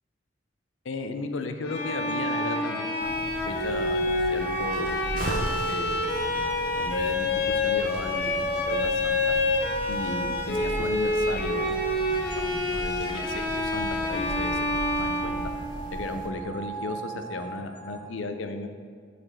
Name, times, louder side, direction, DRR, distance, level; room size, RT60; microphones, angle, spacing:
voice 1, 0.8-3.1 3.5-4.0 4.3-6.2 6.7-9.3 9.9-11.6 12.3-14.6 15.0-15.4 15.9-18.7, left 3 dB, 90° left, 7 dB, 0.5 m, -35 dB
Bowed string instrument, 1.6-15.9, left 2 dB, 55° left, 0.9 m, -28 dB
sound 1, 1.8-18.1, right 1 dB, 25° left, 0.4 m, -41 dB
sound 2, 3.0-16.3, right 1 dB, 45° right, 0.7 m, -38 dB
7.8 x 4.2 x 4.3 m, 2.1 s
head